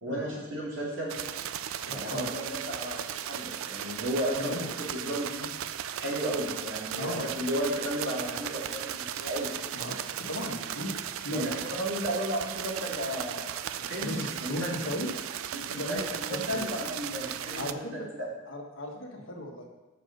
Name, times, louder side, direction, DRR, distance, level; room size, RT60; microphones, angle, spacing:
voice 1, 0.0-1.1 1.9-5.5 6.0-9.5 11.3-14.7 15.5-18.3, right 1 dB, 70° right, -4 dB, 2.7 m, -34 dB
sound 1, 1.1-17.7, right 10 dB, 90° right, 0.4 m, -36 dB
voice 2, 1.8-2.3 4.3-4.7 7.0-7.2 9.7-11.4 14.0-15.1 15.7-16.0 16.3-16.6 17.5-18.1 18.5-19.7, left 1 dB, 75° left, 1 dB, 1.5 m, -36 dB
7.2 x 5.3 x 6.7 m, 1.1 s
head